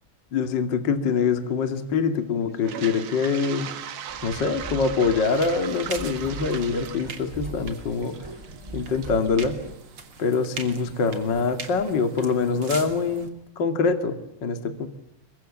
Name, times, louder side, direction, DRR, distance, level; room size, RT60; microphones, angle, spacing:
voice 1, 0.3-3.7 4.2-8.2 8.7-9.6 10.2-14.9, left 5 dB, 40° left, 7 dB, 1.6 m, -24 dB
Toilet flush, 2.5-10.5, right 9 dB, 85° right, 1.5 m, -39 dB
sound 1, 4.1-9.7, right 2 dB, 10° right, 1.5 m, -40 dB
sound 2, 5.2-13.3, right 4 dB, 35° right, 2.8 m, -41 dB
29.5 x 24.0 x 7.4 m, 0.81 s
omnidirectional pair, 5.6 m